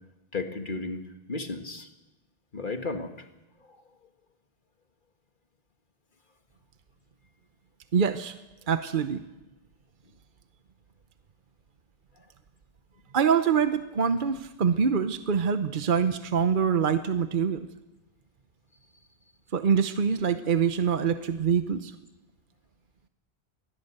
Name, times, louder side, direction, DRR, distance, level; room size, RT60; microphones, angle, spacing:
voice 1, 0.3-1.9 2.5-3.1 3.7-3.8, left 3 dB, 55° left, 6 dB, 2.0 m, -34 dB
voice 2, 7.9-8.3 8.7-9.2 13.1-17.7 19.5-21.9, right 7 dB, 55° right, 10 dB, 1.0 m, -25 dB
23.0 x 17.0 x 8.0 m, 1.0 s
omnidirectional pair, 1.0 m